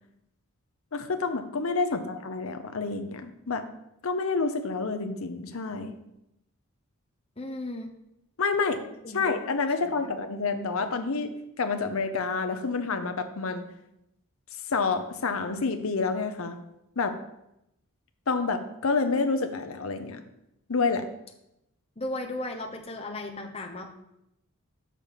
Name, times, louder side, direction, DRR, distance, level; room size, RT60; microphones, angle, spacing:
voice 1, 0.9-3.6 4.0-6.0 8.4-8.8 9.1-11.3 11.6-13.7 14.7-16.6 17.0-17.1 18.3-20.2 20.7-21.1, left 4 dB, 70° left, 8 dB, 0.7 m, -28 dB
voice 2, 1.8-2.1 7.4-7.9 9.0-9.2 10.0-10.1 22.0-23.9, left 1 dB, 25° left, 2 dB, 0.8 m, -36 dB
6.6 x 5.7 x 5.0 m, 0.84 s
head